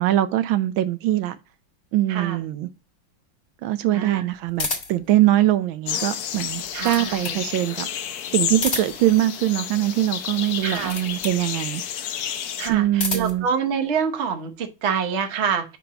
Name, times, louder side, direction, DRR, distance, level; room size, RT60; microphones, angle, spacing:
voice 1, 0.0-1.4 1.9-2.7 3.6-7.9 8.3-11.8 12.7-13.5, right 14 dB, 80° right, 1.3 m, -22 dB
voice 2, 2.1-2.4 3.9-4.3 6.7-7.4 10.6-10.9 12.6-15.8, right 6 dB, 45° right, 0.9 m, -26 dB
sound 1, 4.6-5.1 6.4-7.4 8.5-9.1 10.6-11.4 12.7-13.4, left 3 dB, 35° left, 1.5 m, -30 dB
sound 2, 5.9-12.7, left 9 dB, 70° left, 0.9 m, -30 dB
5.2 x 4.5 x 5.7 m
omnidirectional pair, 2.2 m